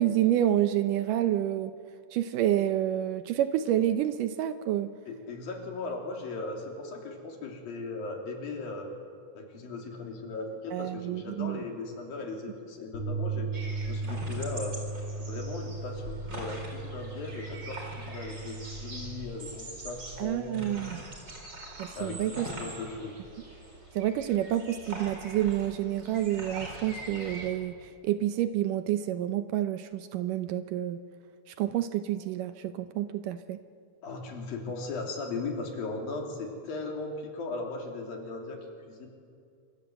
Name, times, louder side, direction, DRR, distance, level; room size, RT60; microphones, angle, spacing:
voice 1, 0.0-1.7 2.1-4.9 10.7-11.6 20.2-21.0 21.8-22.5 24.0-31.0 31.5-33.6, right 12 dB, 75° right, 10 dB, 2.2 m, -28 dB
voice 2, 5.1-8.9 9.3-13.5 13.9-14.8 15.2-20.7 21.9-23.2 34.0-39.1, left 3 dB, 75° left, 1 dB, 4.9 m, -38 dB
Bass guitar, 12.9-19.2, right 3 dB, 30° left, 8.5 m, -36 dB
sound 1, 13.5-27.5, right 1 dB, 30° right, 4.6 m, -43 dB
25.5 x 25.0 x 7.9 m, 2.4 s
omnidirectional pair, 4.2 m